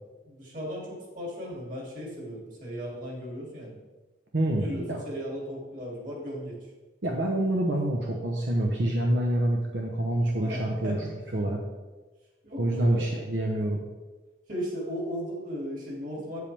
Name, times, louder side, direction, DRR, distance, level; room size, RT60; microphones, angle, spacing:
voice 1, 0.2-3.8 4.6-6.6 10.4-11.1 12.4-13.0 14.5-16.4, equal, 45° right, -3 dB, 2.7 m, -36 dB
voice 2, 4.3-5.0 7.0-11.0 11.3-11.6 12.6-13.8, right 1 dB, 80° right, 0 dB, 1.0 m, -27 dB
8.8 x 8.1 x 3.4 m, 1.2 s
head